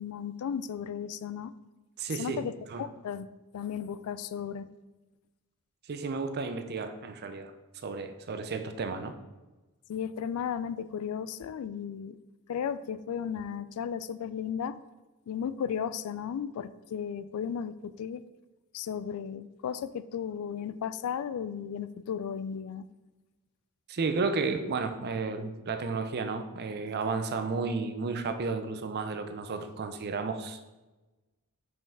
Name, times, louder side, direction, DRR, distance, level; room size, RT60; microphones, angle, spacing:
voice 1, 0.0-1.5 2.2-2.5 2.8-3.3 3.5-4.7 9.9-12.2 12.5-14.8 15.3-18.2 18.7-22.8, left 8 dB, 75° left, 15 dB, 0.3 m, -35 dB
voice 2, 2.0-2.4 2.7-2.9 5.9-7.5 7.8-9.1 23.9-30.7, right 4 dB, 50° right, 8 dB, 0.5 m, -32 dB
5.3 x 5.3 x 3.5 m, 1.1 s
head